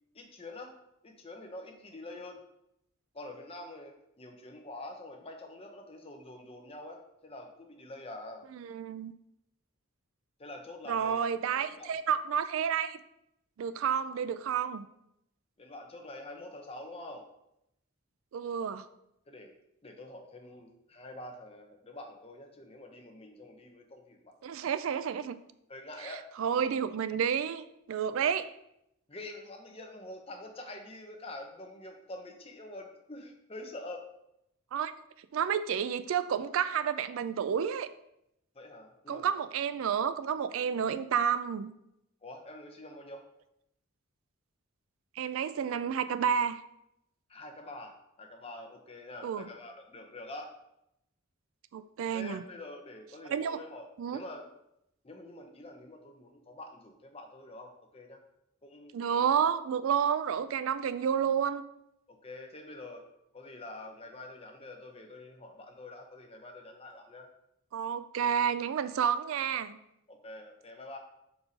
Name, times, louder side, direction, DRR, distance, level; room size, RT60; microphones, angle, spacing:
voice 1, 0.1-0.7 1.0-2.4 3.1-8.4 10.4-11.2 11.7-12.0 15.6-17.2 19.3-19.5 19.8-24.3 25.7-26.2 29.1-34.0 38.5-39.3 42.2-43.2 47.3-50.5 52.1-54.5 55.0-58.2 58.6-59.3 62.1-63.0 63.3-67.3 70.1-71.0, left 2 dB, 25° left, 3 dB, 0.8 m, -46 dB
voice 2, 8.5-9.1 10.9-13.0 13.6-14.9 18.3-18.8 24.4-25.4 26.0-28.5 34.7-34.9 35.3-37.9 39.1-41.7 45.2-46.6 49.2-49.5 51.7-52.4 53.3-53.6 54.0-54.2 58.9-61.6 67.7-69.8, right 7 dB, 70° right, 12 dB, 0.3 m, -30 dB
4.5 x 4.1 x 5.2 m, 0.80 s
head